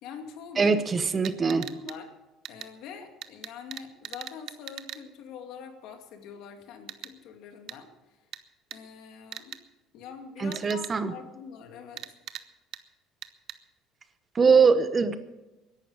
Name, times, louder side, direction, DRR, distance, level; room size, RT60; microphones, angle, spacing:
voice 1, 0.0-0.9 1.4-2.1 2.5-7.9 8.7-9.6 9.9-12.0, left 6 dB, 65° left, 5 dB, 2.3 m, -44 dB
voice 2, 0.6-1.6 10.4-11.1 14.3-15.2, right 5 dB, 25° right, 11 dB, 1.0 m, -22 dB
sound 1, 1.2-2.0 2.4-2.7 3.2-5.0 6.9-7.1 7.7-7.8 8.3-8.4 8.7-8.8 9.3-9.6 10.5-10.9 12.0-12.4 12.7-12.8 13.2-13.6, right 12 dB, 60° right, 0.9 m, -39 dB
21.0 x 11.5 x 4.8 m, 1.1 s
cardioid pair, 115°, 0 cm